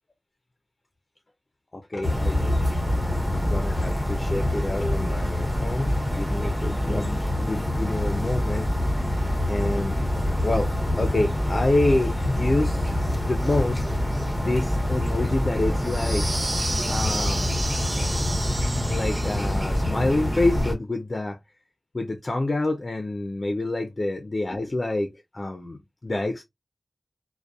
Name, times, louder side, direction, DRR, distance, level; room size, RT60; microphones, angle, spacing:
voice 1, 1.7-2.6 3.3-8.7 9.1-9.2 9.5-10.0 10.4-13.0 13.2-16.3 16.9-17.6 18.9-21.4 21.9-26.4, left 2 dB, 45° left, 0.4 m, -27 dB
sound 1, 2.0-20.7, left 1 dB, ahead, 0.7 m, -25 dB
sound 2, 15.8-19.8, right 2 dB, 45° right, 0.4 m, -32 dB
2.6 x 2.0 x 2.3 m
wide cardioid pair, 70°, 0 cm